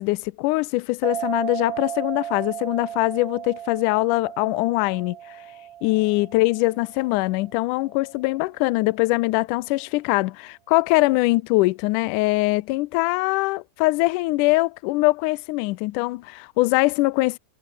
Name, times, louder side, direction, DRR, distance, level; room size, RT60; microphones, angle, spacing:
voice 1, 0.0-5.2 5.8-17.4, left 22 dB, 90° left, 1.8 m, -22 dB
sound 1, 1.0-8.1, right 11 dB, 60° right, 2.2 m, -35 dB
omnidirectional pair, 4.3 m